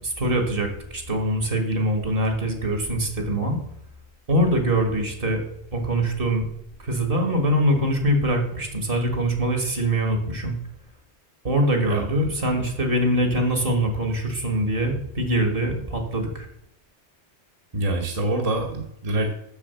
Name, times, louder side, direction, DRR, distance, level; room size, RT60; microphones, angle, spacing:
voice 1, 0.0-3.6 4.3-5.4 5.7-6.4 6.8-10.6 11.4-16.5, right 1 dB, 55° right, 4 dB, 1.9 m, -23 dB
voice 2, 17.7-19.3, right 1 dB, 35° right, 0 dB, 1.2 m, -25 dB
7.0 x 6.6 x 6.9 m, 0.74 s
omnidirectional pair, 1.1 m